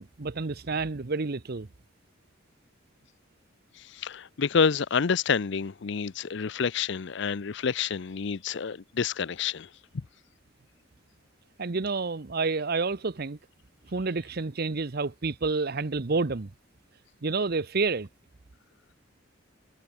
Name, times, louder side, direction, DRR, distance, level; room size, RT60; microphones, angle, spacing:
voice 1, 0.0-1.7 11.6-13.4 13.9-16.5 17.2-18.1, right 4 dB, 50° right, 0.8 m, -29 dB
voice 2, 3.8-9.7, left 6 dB, 60° left, 0.5 m, -28 dB
head